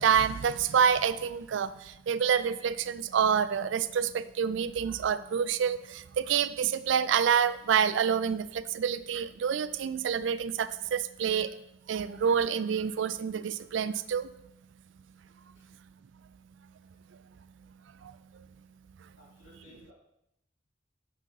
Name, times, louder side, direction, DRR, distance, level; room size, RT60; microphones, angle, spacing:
voice 1, 0.0-11.5 11.9-14.3 18.0-18.1, right 7 dB, 70° right, 15 dB, 0.4 m, -27 dB
voice 2, 19.2-19.9, left 1 dB, 85° left, -6 dB, 3.1 m, -56 dB
7.4 x 5.6 x 3.9 m, 0.82 s
head